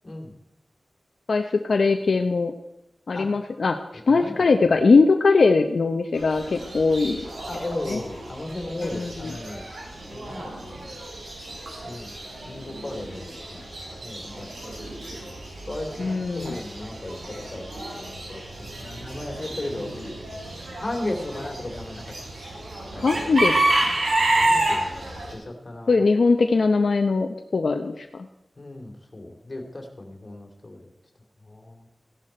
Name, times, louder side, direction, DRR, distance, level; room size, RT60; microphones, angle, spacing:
voice 1, 1.3-2.5 3.1-3.8 4.1-7.2 7.9-8.0 8.8-9.4 16.0-16.6 22.9-23.5 23.9-24.0 25.9-28.3, left 4 dB, 70° left, 5 dB, 0.8 m, -21 dB
voice 2, 4.1-4.4 7.5-9.7 10.1-10.8 11.8-12.1 12.5-13.6 14.0-14.8 15.7-16.1 16.3-20.1 20.8-22.0 22.9-23.6 24.4-26.0 28.6-30.9 31.5-31.8, left 1 dB, 35° left, 1 dB, 3.0 m, -36 dB
Chicken rooster / Bird, 6.1-25.3, right 2 dB, 90° right, 5.3 m, -30 dB
16.0 x 11.5 x 4.4 m, 0.92 s
wide cardioid pair, 100°, 0 cm